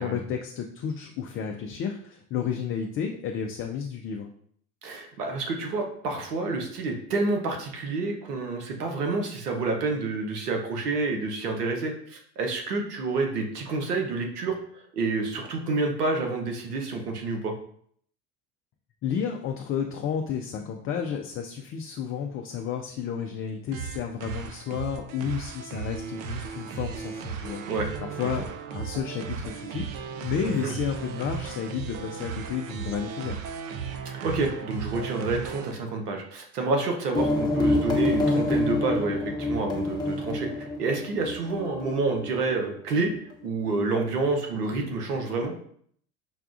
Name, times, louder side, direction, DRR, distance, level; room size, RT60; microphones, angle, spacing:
voice 1, 0.0-4.3 19.0-27.6 28.0-33.4, left 7 dB, 30° left, 3 dB, 0.4 m, -32 dB
voice 2, 4.8-17.5 27.7-27.9 30.5-30.7 34.2-43.1 43.4-45.5, right 3 dB, 90° right, 3 dB, 0.9 m, -28 dB
sound 1, 23.7-35.7, right 6 dB, 55° right, 0.6 m, -36 dB
sound 2, 37.1-42.5, left 2 dB, 10° left, 0.9 m, -27 dB
5.7 x 2.3 x 2.5 m, 0.63 s
hypercardioid pair, 80°, 46 cm